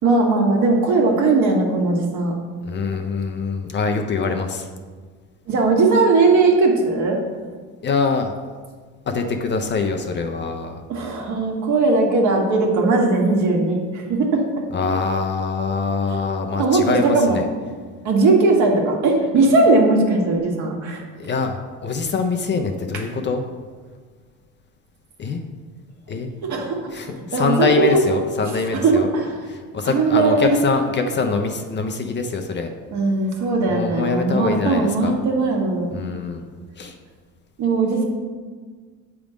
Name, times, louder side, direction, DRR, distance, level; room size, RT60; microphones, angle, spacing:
voice 1, 0.0-2.3 5.5-7.2 10.9-14.4 16.6-17.4 18.0-21.0 26.4-26.9 27.3-28.0 28.8-29.3 29.8-30.5 32.9-36.0 37.6-38.0, right 3 dB, 55° right, 0 dB, 1.5 m, -18 dB
voice 2, 2.6-4.7 7.8-8.3 9.1-10.8 14.7-17.4 21.2-23.4 25.2-25.4 26.1-26.3 26.9-29.1 29.5-32.7 33.7-35.2 35.9-36.4 36.8-37.0, left 4 dB, 30° left, 4 dB, 0.6 m, -24 dB
7.6 x 3.6 x 5.0 m, 1.5 s
cardioid pair, 115°, 35 cm